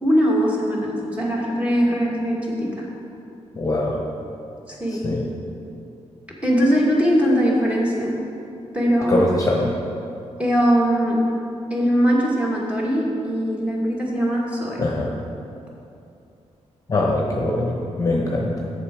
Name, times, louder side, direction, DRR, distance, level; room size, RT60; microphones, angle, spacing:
voice 1, 0.0-2.9 4.7-5.1 6.4-8.2 8.7-9.2 10.4-11.3 11.7-14.8, equal, 10° right, -4 dB, 1.6 m, -21 dB
voice 2, 3.6-4.0 5.0-5.3 9.1-9.7 14.8-15.1 16.9-18.7, left 2 dB, 30° left, -1 dB, 0.9 m, -22 dB
7.4 x 6.9 x 4.8 m, 2.7 s
wide cardioid pair, 115°, 12 cm